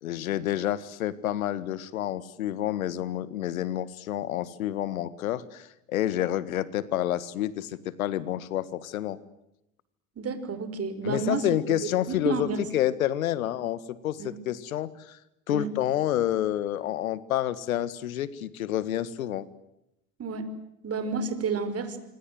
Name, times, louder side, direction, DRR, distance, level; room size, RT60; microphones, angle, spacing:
voice 1, 0.0-9.2 11.0-12.5 12.7-15.2 15.5-19.5, left 12 dB, 80° left, 18 dB, 1.8 m, -29 dB
voice 2, 10.2-11.5 12.1-12.6 14.2-14.4 15.5-15.7 20.2-20.5 20.8-22.0, right 4 dB, 35° right, 11 dB, 5.8 m, -30 dB
27.0 x 25.5 x 7.9 m, 0.87 s
hypercardioid pair, 75°, 41 cm